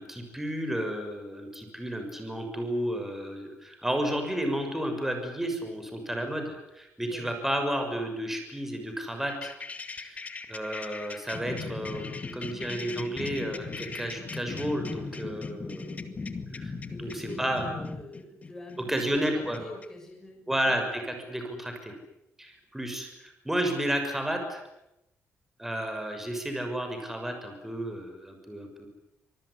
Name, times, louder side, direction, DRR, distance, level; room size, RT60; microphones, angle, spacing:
voice 1, 0.0-9.5 9.9-12.1 12.3-15.9 16.5-16.7 17.0-17.6 18.9-19.6 20.5-21.9 22.4-24.6 25.6-28.9, equal, 5° right, 5 dB, 6.5 m, -32 dB
sound 1, 9.3-19.9, left 4 dB, 30° left, 2.0 m, -39 dB
voice 2, 16.9-20.7, left 1 dB, 10° left, 2 dB, 6.6 m, -44 dB
26.0 x 19.5 x 10.0 m, 0.89 s
cardioid pair, 130°, 5 cm